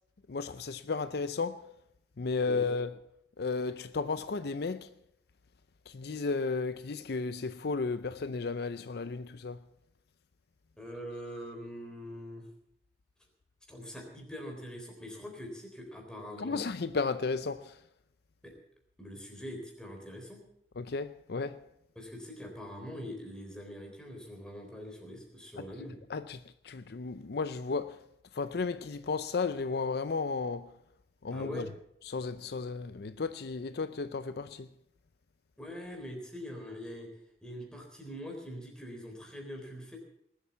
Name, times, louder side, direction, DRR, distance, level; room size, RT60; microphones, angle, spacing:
voice 1, 0.3-1.7 2.2-3.0 3.4-4.9 5.9-9.7 16.4-17.8 20.8-21.7 25.6-25.7 26.1-28.0 28.3-30.7 31.2-31.6 32.0-34.7, left 4 dB, 65° left, 0.5 m, -34 dB
voice 2, 10.8-12.5 13.7-16.6 18.4-18.5 19.0-20.4 22.0-26.0 31.3-31.7 35.6-37.1 37.4-40.0, equal, 5° left, 3.8 m, -43 dB
19.5 x 8.3 x 7.4 m
head